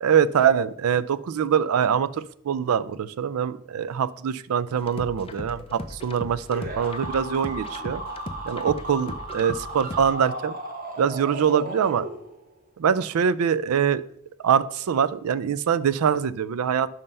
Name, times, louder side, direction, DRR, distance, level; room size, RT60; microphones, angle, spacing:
voice 1, 0.0-8.0 8.5-10.5 11.0-12.0 12.8-14.0 14.4-16.9, right 7 dB, 85° right, 17 dB, 0.4 m, -23 dB
sound 1, 4.8-10.1, left 2 dB, 25° left, 0.5 m, -38 dB
sound 2, 6.5-12.6, right 2 dB, 40° right, 1.1 m, -35 dB
5.5 x 5.4 x 5.3 m, 0.68 s
head